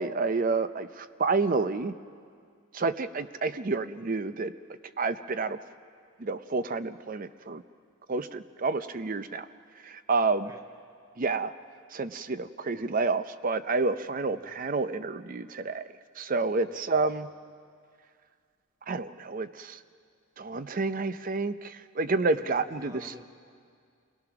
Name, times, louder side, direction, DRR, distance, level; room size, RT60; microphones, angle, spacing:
voice 1, 0.0-1.9 2.7-4.5 5.0-5.6 6.2-7.6 8.1-9.5 9.8-10.5 11.2-11.5 11.9-15.9 16.2-17.3 18.9-19.8 20.4-23.1, right 3 dB, 40° right, 12 dB, 0.5 m, -29 dB
voice 2, 22.2-23.2, left 1 dB, 15° right, 1 dB, 1.9 m, -50 dB
27.5 x 18.5 x 5.9 m, 2.1 s
head